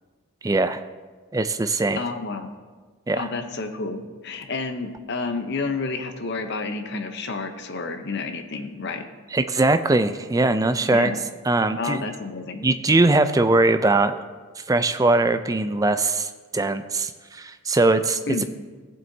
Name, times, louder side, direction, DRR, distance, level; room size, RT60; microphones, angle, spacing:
voice 1, 0.4-0.8 1.3-2.0 3.1-3.3 9.3-11.1 11.5-12.1 12.6-14.1 14.6-18.2, right 2 dB, 15° right, 10 dB, 0.3 m, -21 dB
voice 2, 2.0-2.5 3.2-9.0 10.9-11.2 11.8-12.7 18.3-18.4, left 3 dB, 50° left, 6 dB, 0.8 m, -30 dB
16.5 x 7.6 x 2.7 m, 1.4 s
head